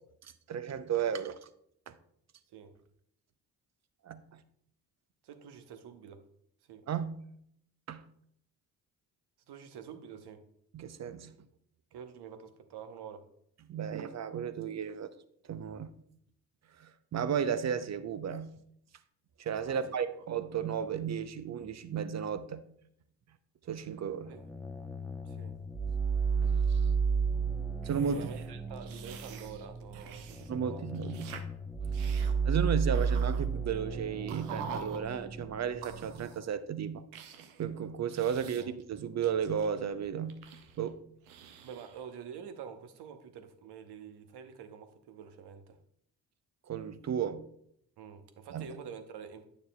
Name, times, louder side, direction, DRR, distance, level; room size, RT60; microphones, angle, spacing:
voice 1, 0.2-1.4 1.9-2.0 4.0-4.4 6.9-7.2 7.9-8.0 10.7-11.3 13.7-15.1 15.5-15.9 16.8-18.5 19.4-22.7 23.7-24.4 26.4-26.8 27.8-28.3 30.5-31.4 31.8-37.1 37.6-40.4 40.8-41.0 46.7-47.5 48.5-48.7, right 8 dB, 40° right, 0.6 m, -34 dB
voice 2, 5.2-6.2 6.7-6.9 9.5-10.4 11.9-13.3 19.7-20.2 24.3-24.4 25.2-25.6 28.1-30.9 38.6-38.7 41.6-45.8 48.0-49.4, right 7 dB, 65° right, 0.9 m, -47 dB
sound 1, 24.2-36.2, right 5 dB, ahead, 0.9 m, -33 dB
sound 2, 27.8-30.5 30.8-31.4 31.9-32.3 32.9-33.5 34.3-35.0 35.8-36.5 37.1-37.6 38.1-38.8 39.2-40.9 41.2-42.1, right 6 dB, 90° right, 0.6 m, -46 dB
9.4 x 6.6 x 2.2 m
hypercardioid pair, 45°, 43 cm